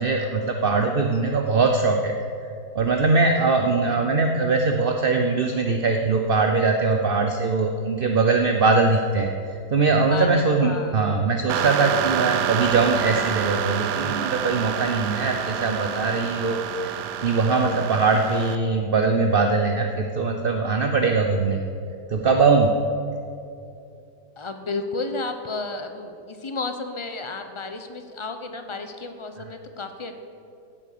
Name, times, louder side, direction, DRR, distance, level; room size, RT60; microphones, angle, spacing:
voice 1, 0.0-2.1 2.7-16.9 17.2-21.6 22.1-22.8, right 4 dB, 45° right, 4 dB, 0.7 m, -21 dB
voice 2, 10.1-11.1 24.4-30.1, left 3 dB, 25° left, 7 dB, 0.7 m, -32 dB
sound 1, 11.5-18.6, right 9 dB, 80° right, 1.3 m, -28 dB
16.0 x 9.0 x 6.7 m, 2.6 s
omnidirectional pair, 1.8 m